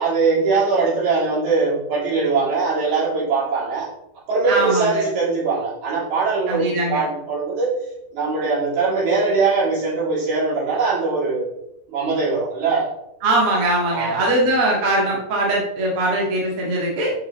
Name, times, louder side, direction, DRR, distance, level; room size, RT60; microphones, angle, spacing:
voice 1, 0.0-3.9 4.3-7.7 8.1-11.5 11.9-12.9 13.8-14.3, right 4 dB, 55° right, -8 dB, 4.5 m, -21 dB
voice 2, 4.5-5.0 6.5-7.0 13.2-17.1, right 1 dB, 90° right, -3 dB, 1.2 m, -21 dB
8.8 x 5.9 x 3.1 m, 0.81 s
omnidirectional pair, 5.9 m